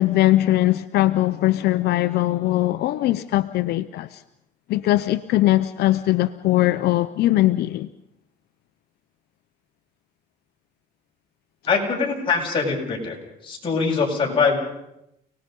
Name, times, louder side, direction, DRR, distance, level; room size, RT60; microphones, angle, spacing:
voice 1, 0.0-4.2 4.7-7.9, left 15 dB, 75° left, 0.7 m, -20 dB
voice 2, 11.7-13.2 13.4-14.6, left 5 dB, 30° left, 7.5 m, -22 dB
29.5 x 19.5 x 5.4 m
cardioid pair, 110°, 17 cm